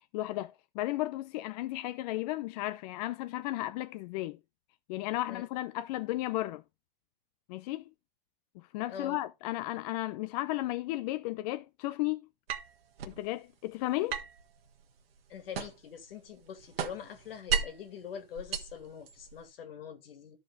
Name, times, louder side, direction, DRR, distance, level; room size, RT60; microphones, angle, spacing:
voice 1, 0.1-4.4 4.9-6.6 7.5-7.9 8.7-12.2 13.0-14.2, left 17 dB, 45° left, 0.6 m, -34 dB
sound 1, 12.5-13.2 14.1-16.0 16.3-17.9 18.4-19.4, right 7 dB, 85° right, 1.6 m, -35 dB
voice 2, 15.3-20.4, left 8 dB, 75° left, 2.4 m, -44 dB
12.5 x 5.0 x 3.7 m
hypercardioid pair, 135°, 29 cm